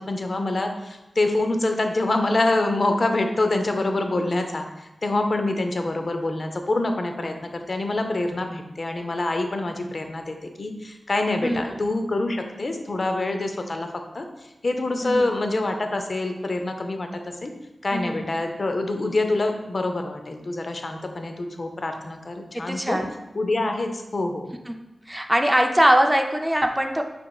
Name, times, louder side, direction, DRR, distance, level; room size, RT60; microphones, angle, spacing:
voice 1, 0.0-13.9 14.1-14.3 14.6-17.5 17.8-23.0 23.3-24.5, left 2 dB, 55° left, 5 dB, 0.5 m, -26 dB
voice 2, 15.0-15.3 17.9-18.2 22.5-23.1 24.7-24.8 25.1-27.0, equal, 10° right, 4 dB, 0.4 m, -22 dB
5.1 x 4.3 x 2.3 m, 0.99 s
wide cardioid pair, 60°, 0 cm